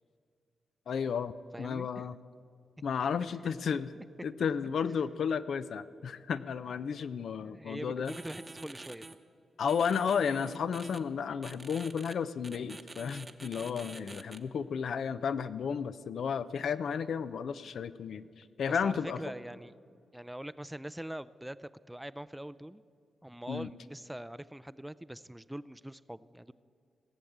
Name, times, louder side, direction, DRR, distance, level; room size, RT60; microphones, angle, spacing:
voice 1, 0.9-2.2 2.8-3.9 4.2-8.1 9.6-19.2 23.5-23.7, left 7 dB, 75° left, 13 dB, 0.4 m, -33 dB
voice 2, 1.5-2.1 7.4-9.1 18.6-19.7 20.1-22.8 23.2-26.5, right 1 dB, 10° right, 17 dB, 0.4 m, -43 dB
sound 1, 8.0-9.1 9.7-11.0 11.4-12.1 12.4-14.4, right 2 dB, 30° right, 0.9 m, -47 dB
17.0 x 7.2 x 8.0 m, 2.3 s
cardioid pair, 60°, 0 cm